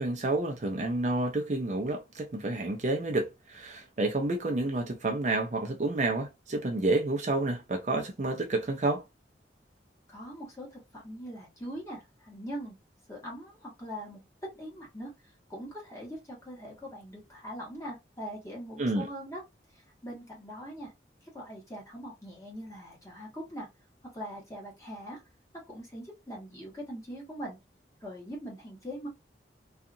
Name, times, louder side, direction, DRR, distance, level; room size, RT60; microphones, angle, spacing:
voice 1, 0.0-9.0 18.8-19.1, right 2 dB, 40° right, 0.5 m, -29 dB
voice 2, 10.1-12.8 13.1-15.1 15.5-19.4 19.7-20.9 21.2-23.7 24.1-25.2 25.7-27.6 28.0-29.1, equal, 15° left, 1.2 m, -42 dB
2.7 x 2.4 x 2.5 m
head